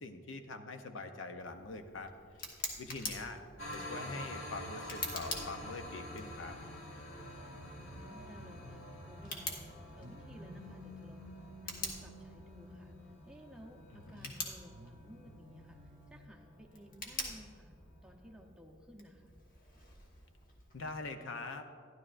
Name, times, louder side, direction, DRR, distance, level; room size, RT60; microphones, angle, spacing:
voice 1, 0.0-2.1 2.8-3.4 3.7-6.6 13.9-14.3 20.7-21.7, left 3 dB, 70° left, 7 dB, 0.7 m, -44 dB
Tick, 1.4-21.1, left 2 dB, 45° left, 1.3 m, -47 dB
sound 1, 3.6-18.5, left 1 dB, 85° left, 1.3 m, -49 dB
sound 2, 6.6-9.6 10.0-13.9 14.7-16.3, equal, 60° right, 0.7 m, -55 dB
voice 2, 7.8-11.4 11.6-17.7 18.0-19.3, equal, 5° right, 0 dB, 0.7 m, -56 dB
13.0 x 11.0 x 2.5 m, 2.2 s
head